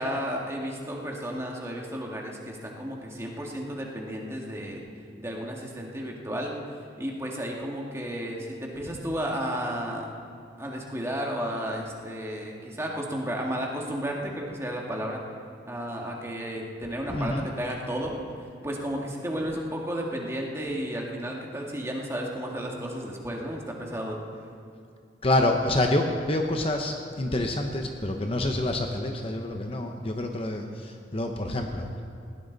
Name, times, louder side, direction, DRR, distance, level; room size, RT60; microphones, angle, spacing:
voice 1, 0.0-4.8 5.2-10.1 10.6-15.2 15.7-24.2, equal, 15° right, -1 dB, 2.0 m, -33 dB
voice 2, 17.1-17.5 25.2-32.0, left 1 dB, 30° left, 3 dB, 0.9 m, -27 dB
20.0 x 17.0 x 4.0 m, 2.5 s
head